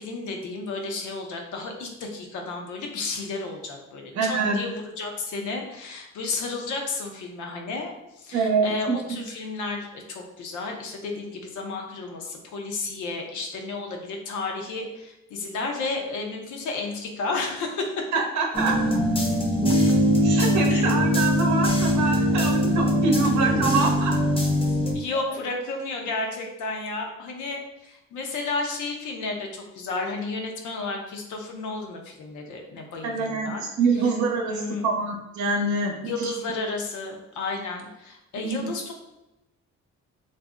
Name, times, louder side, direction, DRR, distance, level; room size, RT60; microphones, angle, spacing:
voice 1, 0.0-18.1 20.7-21.0 23.2-23.3 24.7-33.7 34.0-34.1 34.5-34.8 36.0-38.9, left 3 dB, 75° left, 2 dB, 0.7 m, -32 dB
voice 2, 4.1-4.6 8.3-9.2 18.1-19.0 20.2-24.1 33.0-36.3 38.4-38.7, right 4 dB, 70° right, 2 dB, 0.7 m, -25 dB
sound 1, 18.5-24.9, equal, 20° left, 0.7 m, -22 dB
2.5 x 2.0 x 3.5 m, 0.96 s
cardioid pair, 90°, 30 cm